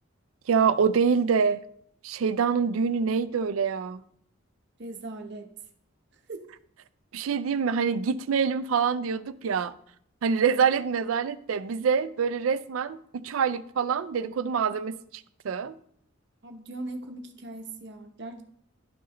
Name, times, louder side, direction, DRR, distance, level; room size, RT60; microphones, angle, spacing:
voice 1, 0.5-1.6 2.0-4.0 7.1-9.7 10.2-15.8, right 6 dB, 85° right, 0.4 m, -26 dB
voice 2, 4.8-5.5 6.3-6.4 16.4-18.4, right 2 dB, 55° right, 0.8 m, -39 dB
11.5 x 4.8 x 3.0 m
head